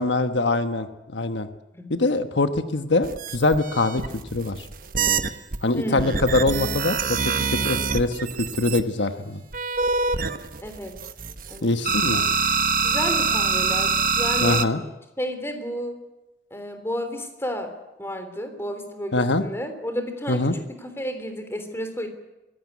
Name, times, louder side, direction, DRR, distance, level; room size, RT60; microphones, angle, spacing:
voice 1, 0.0-1.5 1.9-4.0 4.3-4.6 5.6-7.3 7.6-9.4 11.6-12.2 14.4-14.8 19.1-19.4 20.3-20.5, left 2 dB, 80° left, 9 dB, 1.2 m, -23 dB
sound 1, 3.0-5.6 6.0-8.8 9.5-11.6 11.8-14.7, right 4 dB, 50° right, 1.1 m, -25 dB
voice 2, 5.8-6.2 10.6-10.9 11.5-11.7 12.8-14.7 15.2-16.0 16.5-17.7 18.0-22.1, equal, 15° left, 7 dB, 3.4 m, -31 dB
23.0 x 16.0 x 9.7 m, 1.0 s
head